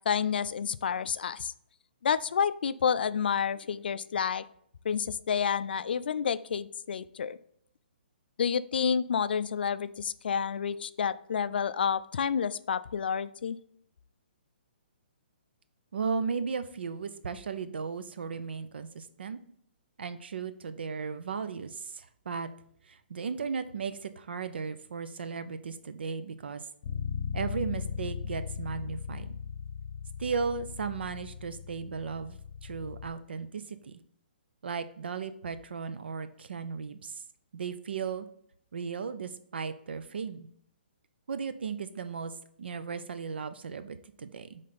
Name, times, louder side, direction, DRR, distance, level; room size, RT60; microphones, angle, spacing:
voice 1, 0.1-1.5 2.0-4.4 4.8-7.4 8.4-13.6, left 7 dB, 65° left, 15 dB, 0.3 m, -29 dB
voice 2, 15.9-19.4 20.0-22.5 22.9-26.6 27.3-29.4 30.2-34.0 34.6-37.1 37.5-38.3 38.7-40.5 41.3-42.3 42.6-44.6, right 5 dB, 75° right, 11 dB, 0.6 m, -36 dB
Bass guitar, 26.8-33.1, left 7 dB, 30° left, 0.8 m, -38 dB
7.5 x 3.3 x 4.1 m, 0.66 s
hypercardioid pair, 170°, 6 cm